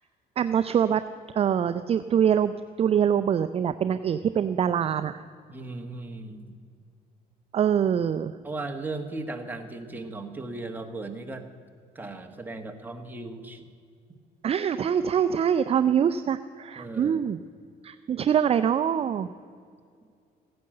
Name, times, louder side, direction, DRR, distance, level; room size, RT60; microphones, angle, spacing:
voice 1, 0.4-1.0 1.3-5.2 7.5-8.3 14.4-17.4 17.8-19.3, right 8 dB, 35° right, 11 dB, 0.4 m, -24 dB
voice 2, 5.5-6.6 8.4-11.5 11.9-13.7 16.8-17.2, right 2 dB, 10° right, 4 dB, 1.5 m, -37 dB
15.5 x 9.5 x 7.7 m, 2.2 s
cardioid pair, 110°, 17 cm